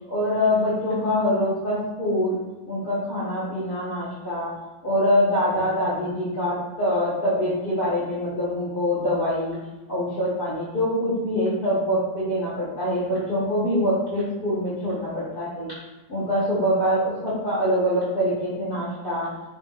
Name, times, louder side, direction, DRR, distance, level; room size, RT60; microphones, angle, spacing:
voice 1, 0.1-2.4 2.7-4.5 4.8-9.6 9.9-15.7 16.1-19.3, equal, 45° left, -10 dB, 0.7 m, -24 dB
3.0 x 2.3 x 3.6 m, 1.1 s
omnidirectional pair, 2.0 m